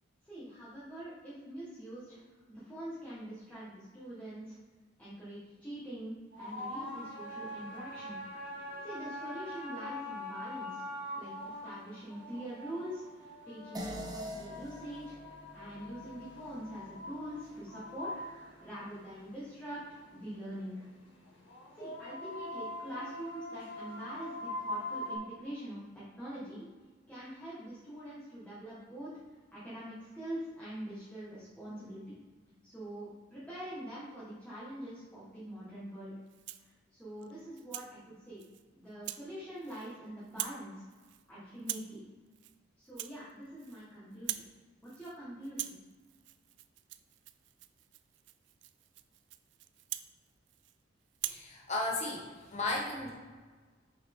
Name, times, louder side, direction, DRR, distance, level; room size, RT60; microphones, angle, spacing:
voice 1, 0.2-4.6 5.0-8.2 8.5-10.9 11.1-18.1 18.6-20.9 21.7-26.7 27.1-32.2 32.6-36.2 36.6-40.9 41.3-42.0 42.8-44.4 44.8-45.8, right 1 dB, 10° left, -10 dB, 1.6 m, -44 dB
sound 1, 6.3-25.2, left 1 dB, 70° left, 1.6 m, -43 dB
sound 2, 13.7-18.5, equal, 20° right, 0.9 m, -46 dB
Rattle (instrument), 36.3-36.7 37.2-37.9 38.4-38.6 39.0-39.3 39.6-40.0 40.2-40.6 40.9-41.2 41.6-42.0 42.3-42.6 42.8-43.9 44.1-44.5 44.8-45.2 45.4-50.8 51.1-51.5, right 14 dB, 65° right, 0.3 m, -43 dB
voice 2, 51.2-53.1, left 2 dB, 40° left, -2 dB, 1.0 m, -35 dB
6.4 x 5.6 x 3.7 m, 1.4 s
head